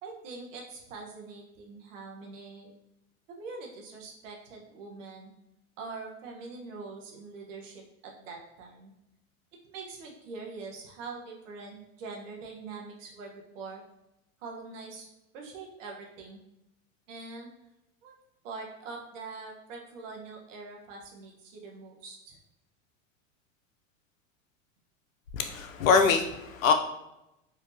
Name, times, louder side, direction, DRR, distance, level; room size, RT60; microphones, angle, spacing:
voice 1, 0.0-2.7 3.3-5.3 5.8-8.9 9.6-13.8 14.4-15.1 15.3-16.4 17.1-17.5 18.0-18.1 18.4-22.4, right 4 dB, 70° right, 0 dB, 1.2 m, -43 dB
voice 2, 25.3-26.7, left 5 dB, 85° left, 6 dB, 0.7 m, -24 dB
4.2 x 2.7 x 2.7 m, 0.88 s
hypercardioid pair, 105°, 39 cm